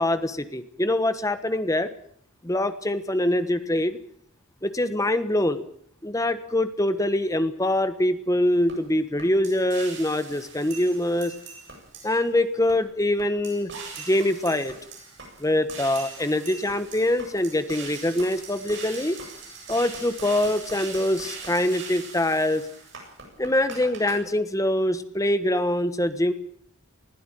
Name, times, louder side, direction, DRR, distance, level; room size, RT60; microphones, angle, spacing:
voice 1, 0.0-1.9 2.4-4.0 4.6-5.6 6.0-11.3 12.0-13.7 14.1-14.7 15.4-19.2 19.7-22.6 23.4-26.3, left 1 dB, 15° left, 11 dB, 1.1 m, -24 dB
sound 1, 8.7-8.8 9.2-12.3 12.7-12.8 13.2-24.1, right 4 dB, 55° right, 7.8 m, -41 dB
20.5 x 16.0 x 9.2 m, 0.64 s
head